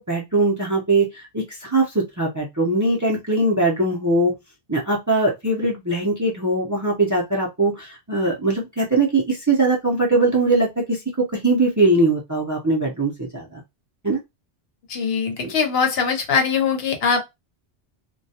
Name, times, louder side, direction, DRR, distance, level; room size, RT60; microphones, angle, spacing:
voice 1, 0.0-4.3 4.7-13.6 14.0-14.2, right 2 dB, 20° right, 0.5 m, -21 dB
voice 2, 14.9-17.3, left 6 dB, 70° left, 0.9 m, -22 dB
2.3 x 2.1 x 2.7 m
omnidirectional pair, 1.1 m